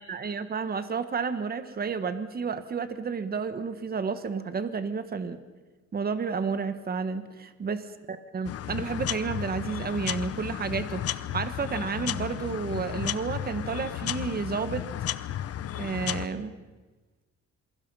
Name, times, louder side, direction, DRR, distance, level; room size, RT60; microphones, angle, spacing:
voice 1, 0.0-5.4 5.9-7.8 8.1-14.8 15.8-16.5, right 5 dB, 30° right, 11 dB, 1.4 m, -31 dB
sound 1, 8.4-16.3, left 11 dB, 50° left, 0.8 m, -33 dB
28.0 x 22.5 x 5.6 m, 1.2 s
cardioid pair, 140°, 30 cm